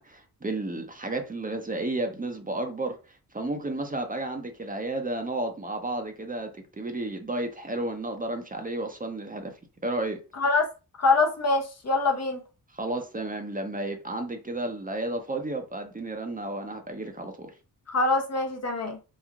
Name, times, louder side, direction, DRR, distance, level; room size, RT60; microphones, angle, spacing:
voice 1, 0.0-3.0 3.3-9.5 9.8-10.2 12.7-17.5, right 2 dB, 20° right, 0.6 m, -32 dB
voice 2, 10.4-10.7 11.0-12.4 17.9-19.0, left 3 dB, 45° left, 0.8 m, -24 dB
3.0 x 2.4 x 2.4 m
cardioid pair, 55°, 37 cm